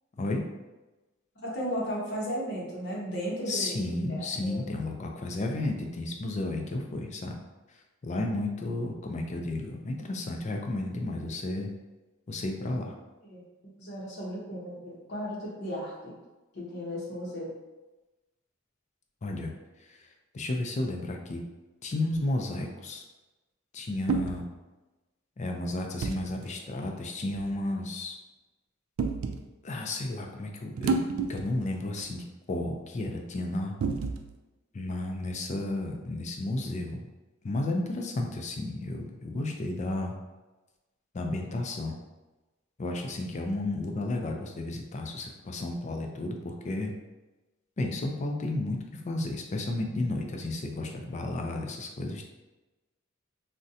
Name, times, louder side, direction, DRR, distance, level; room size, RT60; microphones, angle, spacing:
voice 1, 1.4-4.6 12.6-12.7 13.2-16.2 16.5-17.5, equal, 55° left, -4 dB, 0.7 m, -35 dB
voice 2, 3.5-7.4 8.0-11.7 12.3-12.9 19.2-19.5 19.8-20.0 20.3-21.4 21.8-23.0 23.7-24.5 25.4-28.2 29.6-31.0 31.3-33.7 34.7-37.1 37.4-40.2 41.1-41.9 42.8-46.9 47.8-48.8 49.0-52.2, left 2 dB, 35° left, 2 dB, 0.4 m, -32 dB
sound 1, 22.1-22.4 24.1-24.4 26.0-26.2 27.3-27.5 29.0-29.4 30.8-31.6 32.0-32.1 33.8-34.3, right 4 dB, 75° right, 0.3 m, -30 dB
3.6 x 2.1 x 2.7 m, 1.1 s
head